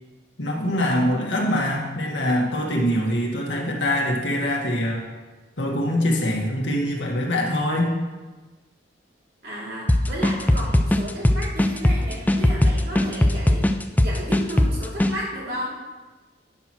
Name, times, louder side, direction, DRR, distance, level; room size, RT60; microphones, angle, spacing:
voice 1, 0.4-5.1 5.6-7.9, left 1 dB, 80° left, -1 dB, 1.7 m, -23 dB
voice 2, 9.4-15.8, equal, 55° right, -5 dB, 2.7 m, -33 dB
sound 1, 9.9-15.1, left 1 dB, 10° left, 0.4 m, -19 dB
9.9 x 4.4 x 6.2 m, 1.2 s
head